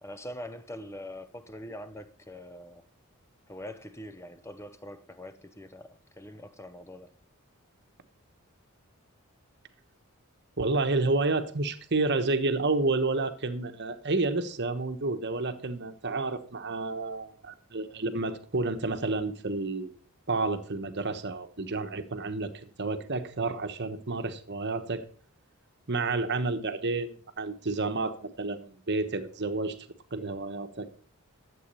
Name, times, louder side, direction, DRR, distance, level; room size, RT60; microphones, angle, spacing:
voice 1, 0.0-2.9 3.5-7.2, left 1 dB, 10° left, 0.8 m, -43 dB
voice 2, 10.6-19.9 20.3-25.0 25.9-29.8 30.1-30.9, right 3 dB, 50° right, 1.2 m, -30 dB
12.0 x 7.9 x 5.5 m
head